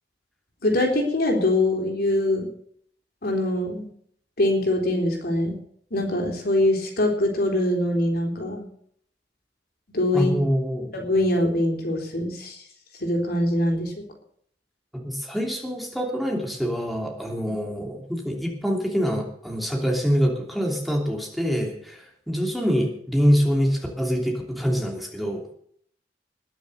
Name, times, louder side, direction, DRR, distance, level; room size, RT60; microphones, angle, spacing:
voice 1, 0.6-2.5 3.2-3.9 4.4-5.6 5.9-8.7 9.9-10.3 10.9-12.6 13.0-13.9, left 1 dB, 60° left, 2 dB, 3.7 m, -23 dB
voice 2, 10.1-10.9 15.0-25.4, equal, ahead, 0 dB, 3.0 m, -25 dB
20.5 x 7.1 x 6.8 m, 0.64 s
head